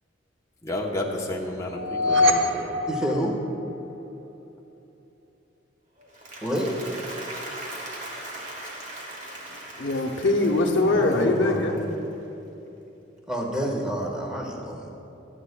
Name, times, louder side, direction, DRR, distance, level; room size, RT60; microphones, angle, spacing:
voice 1, 0.6-2.7, left 1 dB, 15° left, -1 dB, 0.8 m, -31 dB
sound 1, 1.7-4.0, left 2 dB, 75° right, 0.7 m, -24 dB
voice 2, 2.9-3.3 6.4-6.7 10.8-11.6 13.3-14.9, right 1 dB, 5° right, -2 dB, 1.3 m, -28 dB
Applause, 6.0-12.3, right 1 dB, 40° right, 1.6 m, -39 dB
voice 3, 9.8-11.8, left 2 dB, 70° left, 0 dB, 0.8 m, -22 dB
22.5 x 8.2 x 2.2 m, 2.9 s
head